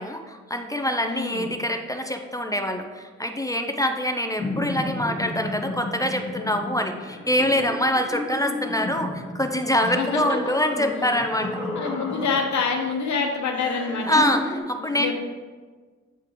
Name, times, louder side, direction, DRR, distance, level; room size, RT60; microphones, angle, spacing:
voice 1, 0.0-11.6 14.1-15.1, left 1 dB, 10° left, 5 dB, 0.5 m, -25 dB
voice 2, 1.1-1.5 9.8-10.5 11.1-11.2 11.7-14.2 14.8-15.1, left 5 dB, 75° left, 3 dB, 0.9 m, -27 dB
sound 1, 4.4-12.9 13.5-14.6, left 1 dB, 40° left, 1.7 m, -32 dB
8.2 x 3.8 x 3.0 m, 1.4 s
cardioid pair, 60°, 29 cm